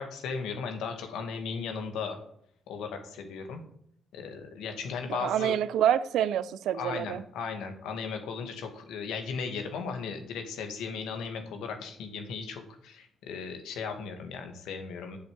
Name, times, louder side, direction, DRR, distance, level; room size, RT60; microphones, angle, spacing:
voice 1, 0.0-2.2 2.7-3.6 4.1-5.6 6.7-15.2, left 5 dB, 85° left, 5 dB, 2.0 m, -36 dB
voice 2, 5.1-7.2, right 10 dB, 80° right, 16 dB, 0.6 m, -27 dB
8.3 x 7.1 x 7.6 m, 0.70 s
cardioid pair, 90°, 0 cm